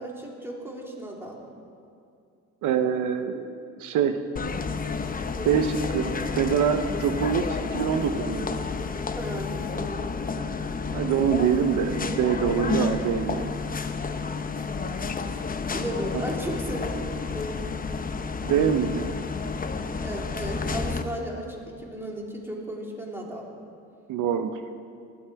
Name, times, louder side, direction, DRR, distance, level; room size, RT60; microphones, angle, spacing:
voice 1, 0.0-1.4 5.3-5.5 9.1-10.5 15.7-17.8 20.0-23.5, right 1 dB, 10° right, -2 dB, 2.8 m, -35 dB
voice 2, 2.6-4.2 5.4-7.4 7.7-8.5 10.9-13.5 18.4-19.1 24.1-24.6, right 8 dB, 85° right, 8 dB, 0.8 m, -25 dB
sound 1, 4.4-21.0, left 4 dB, 30° left, 0.8 m, -30 dB
18.0 x 12.5 x 4.6 m, 2.4 s
cardioid pair, 90°, 30 cm